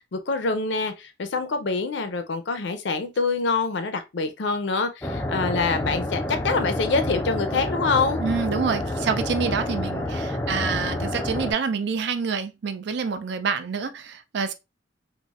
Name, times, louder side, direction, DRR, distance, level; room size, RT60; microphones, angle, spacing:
voice 1, 0.1-8.2, left 4 dB, 65° left, 0.5 m, -25 dB
sound 1, 5.0-11.5, left 1 dB, 10° left, 0.4 m, -28 dB
voice 2, 8.2-14.5, right 5 dB, 60° right, 0.4 m, -27 dB
3.9 x 2.1 x 2.3 m
head